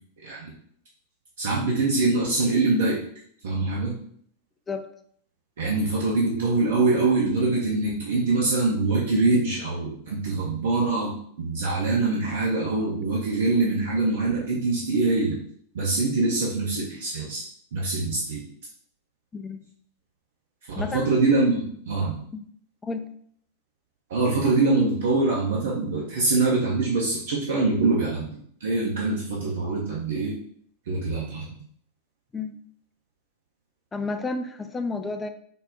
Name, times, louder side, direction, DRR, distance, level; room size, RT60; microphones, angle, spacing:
voice 1, 1.4-3.0 3.4-4.0 5.6-15.4 15.7-17.4 17.7-18.4 20.8-22.1 24.1-30.3 30.9-31.5, right 3 dB, 60° right, -4 dB, 0.7 m, -24 dB
voice 2, 20.7-21.1 22.3-22.5 22.8-23.1 32.3-32.6 33.9-35.3, left 3 dB, 15° left, 7 dB, 0.4 m, -31 dB
3.8 x 2.1 x 3.7 m, 0.62 s
figure-of-eight pair, 90°, 0 cm